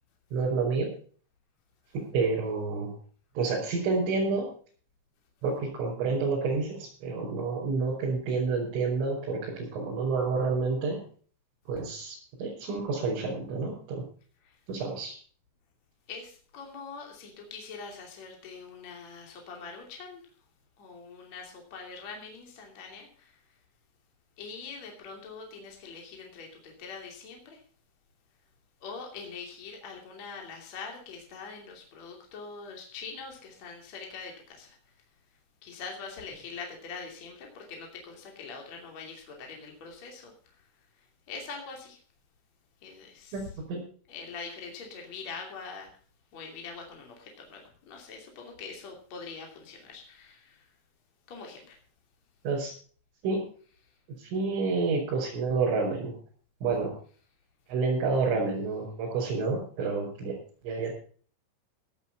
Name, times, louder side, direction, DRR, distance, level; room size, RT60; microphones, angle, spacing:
voice 1, 0.3-0.9 2.1-3.0 3.4-4.5 5.4-11.0 11.7-14.0 14.7-15.1 43.3-43.4 43.7-43.8 52.4-52.7 53.2-53.5 54.2-56.2 56.6-57.0 57.7-60.4 60.6-60.9, right 4 dB, 85° right, -5 dB, 7.8 m, -29 dB
voice 2, 16.1-20.5 20.8-23.6 24.4-27.6 28.8-42.0 42.8-43.6 44.1-46.0 46.3-50.8 51.3-51.8 53.6-54.0 57.0-57.3, left 5 dB, 40° left, 1 dB, 3.4 m, -44 dB
17.0 x 8.2 x 5.7 m, 0.43 s
omnidirectional pair, 5.5 m